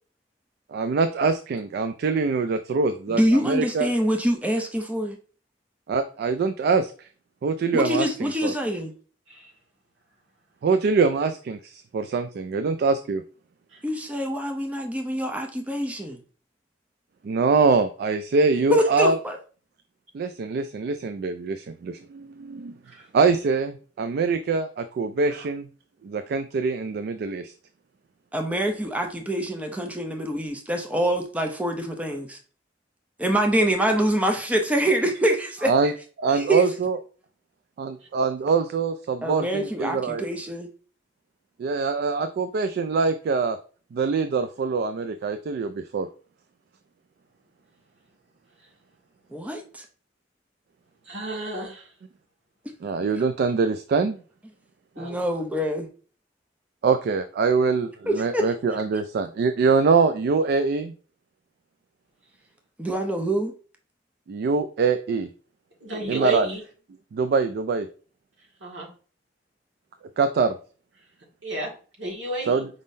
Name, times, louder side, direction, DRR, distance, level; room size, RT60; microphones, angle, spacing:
voice 1, 0.7-3.9 5.9-6.9 7.4-8.5 10.6-13.2 17.2-19.2 20.1-22.8 23.1-25.7 26.0-27.5 35.6-35.9 36.2-37.0 37.8-40.2 41.6-43.6 43.9-46.1 52.8-54.2 56.8-60.9 64.3-65.3 66.1-66.5 67.1-67.9 70.2-70.6 72.5-72.7, right 4 dB, 60° right, 0.3 m, -24 dB
voice 2, 3.1-5.2 7.7-8.9 13.8-16.2 18.7-19.4 28.3-32.4 33.2-35.7 36.3-36.6 39.2-40.7 49.3-49.8 55.0-55.9 58.1-58.5 62.8-63.5, right 1 dB, 10° right, 0.6 m, -25 dB
voice 3, 51.0-51.9 54.9-55.1 65.8-66.6 68.6-68.9 71.4-71.7 72.0-72.6, right 1 dB, 85° right, 1.8 m, -32 dB
5.1 x 3.6 x 2.6 m
head